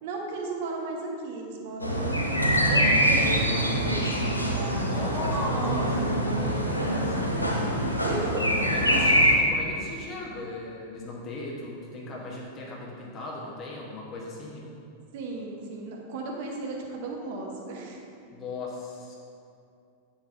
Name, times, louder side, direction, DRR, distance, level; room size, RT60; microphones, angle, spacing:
voice 1, 0.0-2.2 2.7-5.1 5.5-6.2 7.6-8.4 15.1-18.0, right 3 dB, 50° right, 0 dB, 1.1 m, -36 dB
sound 1, 1.8-9.3, equal, 90° left, 0.7 m, -24 dB
voice 2, 4.8-7.9 8.6-14.7 18.3-19.2, left 2 dB, 30° left, -3 dB, 1.1 m, -37 dB
8.7 x 7.1 x 2.6 m, 2.5 s
figure-of-eight pair, 90°, 0 cm